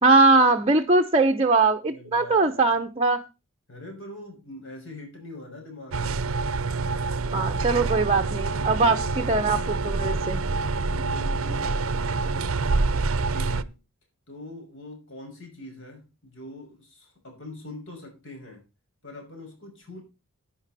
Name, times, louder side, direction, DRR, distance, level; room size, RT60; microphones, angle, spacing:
voice 1, 0.0-3.2 7.3-10.4, right 3 dB, 25° right, 0.8 m, -21 dB
voice 2, 1.8-2.8 3.7-6.3 10.9-11.8 13.3-13.8 14.3-18.6 19.0-20.0, left 1 dB, 55° left, 6.0 m, -43 dB
sound 1, 5.9-13.6, right 3 dB, 65° right, 0.7 m, -26 dB
11.5 x 9.8 x 4.2 m
head